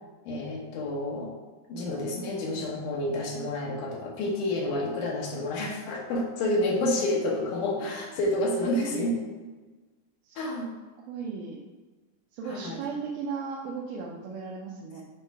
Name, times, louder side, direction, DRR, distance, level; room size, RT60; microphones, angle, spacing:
voice 1, 0.3-1.3 1.7-9.2 10.4-10.7 12.5-12.8, left 1 dB, 80° left, -2 dB, 2.7 m, -29 dB
voice 2, 8.6-9.4 10.2-10.4 11.1-11.6 12.3-15.0, right 5 dB, 85° right, -3 dB, 2.3 m, -36 dB
8.6 x 3.2 x 4.7 m, 1.3 s
omnidirectional pair, 3.6 m